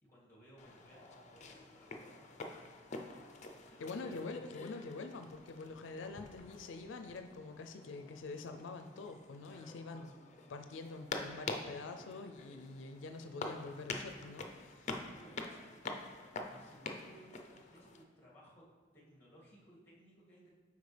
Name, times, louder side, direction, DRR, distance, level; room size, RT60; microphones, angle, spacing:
voice 1, 0.0-2.8 3.2-4.2 9.5-9.8 14.8-18.6 18.9-20.5, equal, 10° left, -6 dB, 2.1 m, -61 dB
sound 1, 0.6-18.0, left 3 dB, 40° left, 0.6 m, -47 dB
voice 2, 3.8-10.1 10.5-14.9, left 3 dB, 90° left, 6 dB, 0.4 m, -46 dB
8.1 x 5.1 x 3.3 m, 1.5 s
head